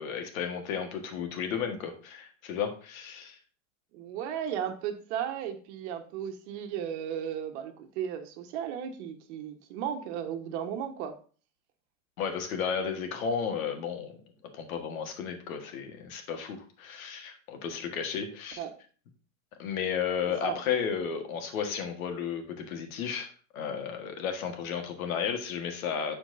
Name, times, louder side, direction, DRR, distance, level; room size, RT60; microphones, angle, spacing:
voice 1, 0.0-3.4 12.2-14.2 14.5-18.6 19.6-26.1, left 7 dB, 80° left, 6 dB, 1.6 m, -33 dB
voice 2, 3.9-11.1 18.6-18.7 20.5-20.6, right 9 dB, 55° right, 5 dB, 1.3 m, -35 dB
11.5 x 4.6 x 2.6 m, 0.40 s
supercardioid pair, 145°, 41 cm